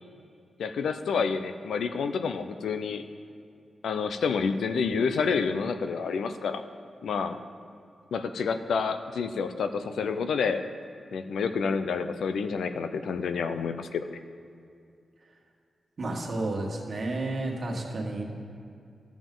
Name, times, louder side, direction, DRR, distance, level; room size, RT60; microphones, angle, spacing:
voice 1, 0.6-3.0 3.8-6.6 7.0-7.4 8.1-10.6 11.1-14.1, left 5 dB, 85° left, 9 dB, 0.4 m, -29 dB
voice 2, 16.0-18.3, right 2 dB, 55° right, -1 dB, 1.6 m, -31 dB
13.5 x 7.1 x 3.8 m, 2.4 s
cardioid pair, 70°, 0 cm